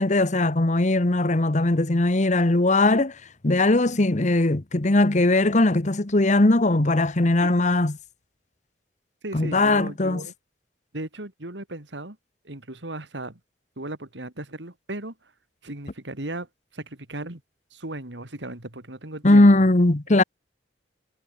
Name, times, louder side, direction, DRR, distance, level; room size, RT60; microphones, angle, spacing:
voice 1, 0.0-3.1 3.4-8.0 9.3-10.2 19.2-20.2, left 2 dB, 40° left, 1.2 m, -19 dB
voice 2, 9.2-10.3 10.9-12.2 12.4-13.4 13.8-15.1 15.6-16.5 16.7-17.4 17.7-19.5, right 1 dB, 80° right, 3.3 m, -36 dB
head